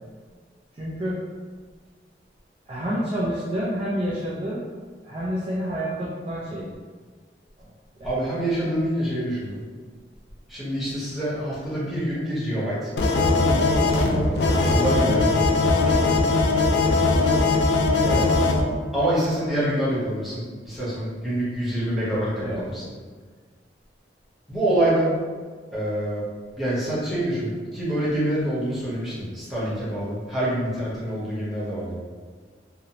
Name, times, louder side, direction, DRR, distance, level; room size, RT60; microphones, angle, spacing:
voice 1, 0.7-1.2 2.7-4.7 5.0-6.7 7.6-7.7 18.0-18.4 22.4-22.6, equal, 35° right, -7 dB, 0.3 m, -28 dB
voice 2, 8.0-9.6 10.5-12.9 13.3-13.6 13.9-16.1 18.9-22.8 24.5-25.1 25.7-26.2 26.6-32.0, right 1 dB, ahead, -11 dB, 0.9 m, -26 dB
sound 1, 13.0-18.6, left 3 dB, 75° left, 0.3 m, -20 dB
2.6 x 2.0 x 2.8 m, 1.5 s
head